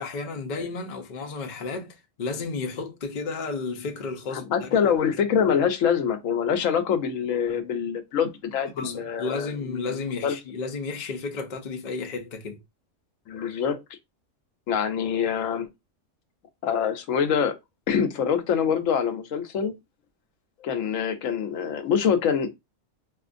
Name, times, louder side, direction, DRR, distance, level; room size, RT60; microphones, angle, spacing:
voice 1, 0.0-4.9 8.7-12.6, left 4 dB, 50° left, 0.6 m, -32 dB
voice 2, 4.3-9.9 10.2-10.4 13.3-13.8 14.7-15.7 16.6-17.6 17.9-19.7 20.6-22.5, left 7 dB, 85° left, 1.1 m, -25 dB
4.4 x 2.4 x 2.5 m
omnidirectional pair, 1.3 m